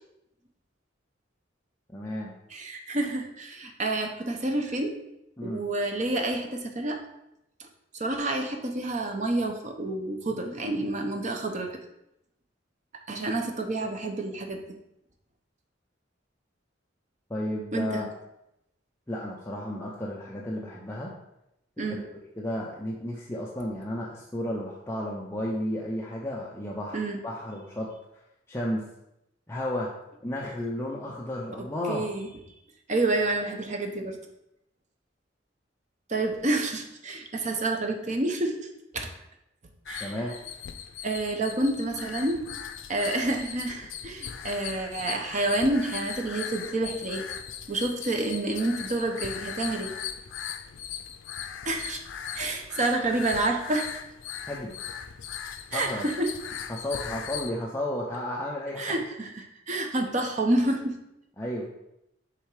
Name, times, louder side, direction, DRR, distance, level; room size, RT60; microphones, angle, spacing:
voice 1, 1.9-2.3 5.4-5.6 17.3-18.1 19.1-21.1 21.8-22.0 22.4-27.9 28.5-28.8 29.5-29.9 30.2-32.1 40.0-40.4 54.5-54.8 55.7-56.1 56.7-59.0 61.4-61.7, left 1 dB, 15° left, -4 dB, 0.6 m, -33 dB
voice 2, 2.5-4.9 5.4-7.0 7.6-7.7 8.0-11.7 13.1-14.8 17.7-18.0 21.8-22.0 26.9-27.2 31.9-32.3 32.9-34.2 36.1-38.7 38.9-39.1 39.9-40.1 41.0-42.4 42.9-47.2 47.7-49.9 51.7-52.0 52.3-53.9 55.7-56.3 58.8-61.0, right 2 dB, 40° right, 3 dB, 0.8 m, -28 dB
sound 1, 39.9-57.5, left 8 dB, 85° left, 0.4 m, -39 dB
6.7 x 3.6 x 4.8 m, 0.85 s
head